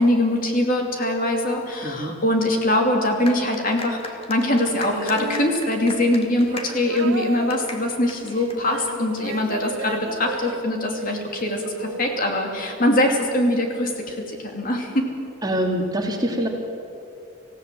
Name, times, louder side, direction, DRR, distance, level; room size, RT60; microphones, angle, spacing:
voice 1, 0.0-15.1, left 1 dB, 45° left, 2 dB, 2.9 m, -22 dB
voice 2, 1.8-2.2 15.4-16.5, right 1 dB, 20° right, 2 dB, 2.2 m, -25 dB
sound 1, 3.3-9.2, left 2 dB, 30° left, 1.8 m, -38 dB
sound 2, 4.7-13.1 14.1-14.2, right 4 dB, 90° right, 1.2 m, -34 dB
26.0 x 16.0 x 7.7 m, 2.6 s
head